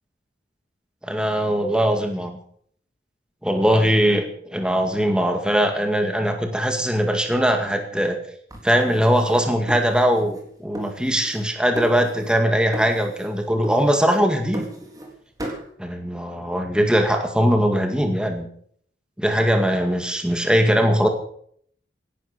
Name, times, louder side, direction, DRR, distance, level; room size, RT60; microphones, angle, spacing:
voice 1, 1.0-2.4 3.4-8.2 8.6-14.7 15.8-18.5 19.2-21.1, equal, 5° right, 5 dB, 2.1 m, -21 dB
sound 1, 8.5-10.5 10.7-11.5 11.8-12.4 12.7-13.3 13.6-15.1 15.4-15.7, right 1 dB, 20° right, 3.8 m, -36 dB
17.5 x 12.0 x 6.7 m, 0.63 s
head